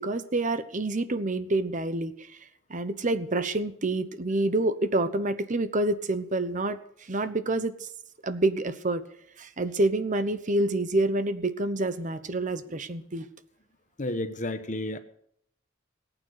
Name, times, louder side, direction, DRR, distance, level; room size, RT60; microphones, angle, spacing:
voice 1, 0.0-2.2 2.7-6.8 7.1-7.9 8.2-9.0 9.4-13.3, right 2 dB, 40° right, 0.9 m, -27 dB
voice 2, 14.0-15.0, left 1 dB, 40° left, 1.2 m, -31 dB
18.5 x 9.0 x 6.5 m
head